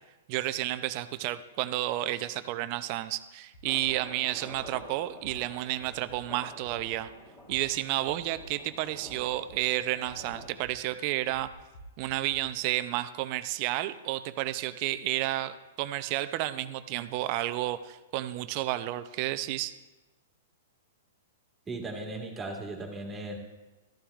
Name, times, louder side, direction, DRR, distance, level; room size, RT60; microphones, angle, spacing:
voice 1, 0.3-7.1 7.5-11.5 12.0-19.7, right 15 dB, 45° right, 13 dB, 0.5 m, -31 dB
sound 1, 3.5-3.9 4.5-4.8 5.2-5.3 5.8-6.2 6.6-7.0 7.5-7.6 8.1-8.4 9.1-9.6 10.0-10.7 11.3-12.4, right 1 dB, 80° left, 2.4 m, -51 dB
sound 2, 3.7-10.5, left 1 dB, 20° left, 2.7 m, -49 dB
voice 2, 21.7-23.4, right 2 dB, 15° right, 0 dB, 1.8 m, -37 dB
14.0 x 11.0 x 2.5 m, 1.1 s
hypercardioid pair, 115°, 0 cm